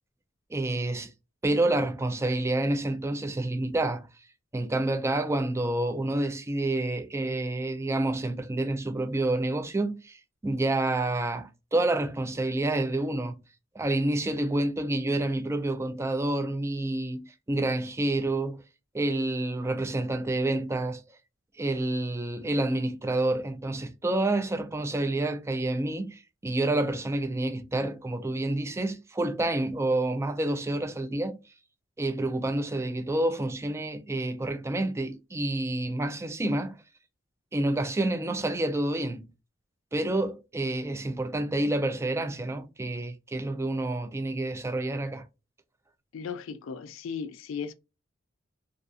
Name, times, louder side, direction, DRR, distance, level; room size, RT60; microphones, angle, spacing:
voice 1, 0.5-1.1 1.4-4.1 4.5-13.4 13.7-18.6 18.9-21.0 21.6-31.4 32.0-36.8 37.5-39.2 39.9-45.2, right 2 dB, 15° right, 0.3 m, -28 dB
voice 2, 46.1-47.7, left 6 dB, 80° left, 0.4 m, -36 dB
2.4 x 2.4 x 2.5 m
head